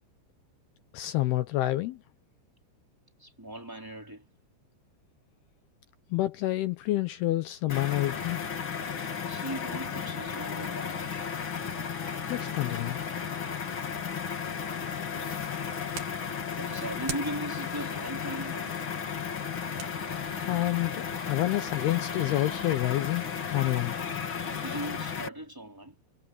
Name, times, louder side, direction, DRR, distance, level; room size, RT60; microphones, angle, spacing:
voice 1, 0.9-2.0 6.1-8.5 12.3-13.0 20.4-23.9, left 16 dB, 75° left, 2.5 m, -28 dB
voice 2, 3.2-4.2 9.2-11.3 16.6-18.8 24.5-26.0, right 1 dB, 5° right, 3.8 m, -38 dB
sound 1, 7.7-25.3, left 7 dB, 40° left, 2.0 m, -34 dB
sound 2, 15.1-21.8, right 7 dB, 50° right, 3.8 m, -47 dB
omnidirectional pair, 5.4 m